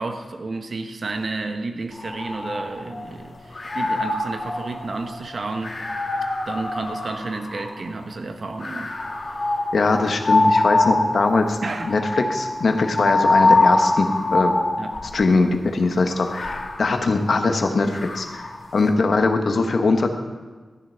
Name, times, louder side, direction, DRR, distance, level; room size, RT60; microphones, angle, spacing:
voice 1, 0.0-5.8 6.5-9.0 9.4-9.6 11.6-12.0 14.8-14.9, right 3 dB, 60° right, 6 dB, 1.1 m, -31 dB
sound 1, 1.9-3.1 3.5-7.9 8.6-15.3 16.0-18.6, left 2 dB, 50° left, 2.1 m, -24 dB
voice 2, 9.7-11.6 11.9-14.6 15.1-18.4 18.7-20.1, left 3 dB, 65° left, 5 dB, 1.1 m, -21 dB
13.5 x 7.5 x 5.7 m, 1.4 s
cardioid pair, 60°, 0 cm